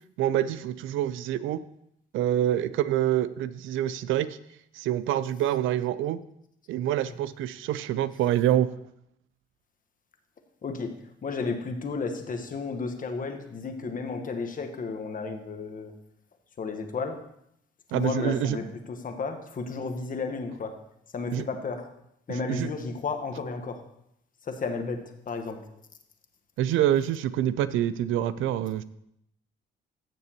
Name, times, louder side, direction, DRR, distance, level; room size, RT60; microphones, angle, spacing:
voice 1, 0.2-1.7 2.1-4.4 4.7-6.2 6.7-8.7 17.9-18.6 21.3-21.4 22.3-22.7 26.6-28.8, right 12 dB, 85° right, 16 dB, 0.5 m, -26 dB
voice 2, 10.6-15.9 16.6-17.2 17.9-20.8 21.1-21.9 22.3-23.8 24.4-25.7, left 4 dB, 45° left, 6 dB, 1.2 m, -33 dB
15.5 x 6.8 x 2.9 m, 0.76 s
cardioid pair, 90°, 20 cm